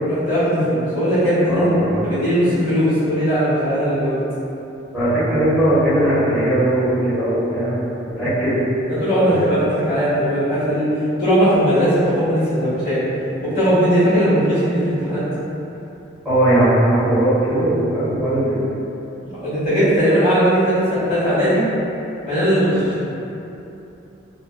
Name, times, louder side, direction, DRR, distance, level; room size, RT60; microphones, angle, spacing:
voice 1, 0.1-4.1 8.9-10.9 11.2-13.0 13.4-15.2 19.4-21.6 22.2-22.9, equal, 45° left, -13 dB, 1.1 m, -18 dB
voice 2, 1.5-2.0 4.9-7.8 8.2-8.5 9.2-9.5 16.2-18.6, right 1 dB, 5° right, -16 dB, 0.9 m, -18 dB
2.5 x 2.3 x 2.2 m, 2.9 s
head